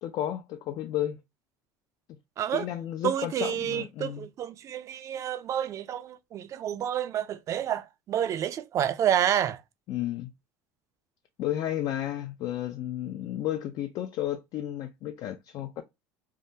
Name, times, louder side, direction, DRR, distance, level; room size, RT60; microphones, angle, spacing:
voice 1, 0.0-1.2 2.5-4.3 9.9-10.3 11.4-15.8, left 12 dB, 50° left, 0.3 m, -32 dB
voice 2, 2.4-2.7 3.0-9.6, right 10 dB, 40° right, 0.4 m, -29 dB
3.5 x 2.1 x 2.6 m
supercardioid pair, 125°, 8 cm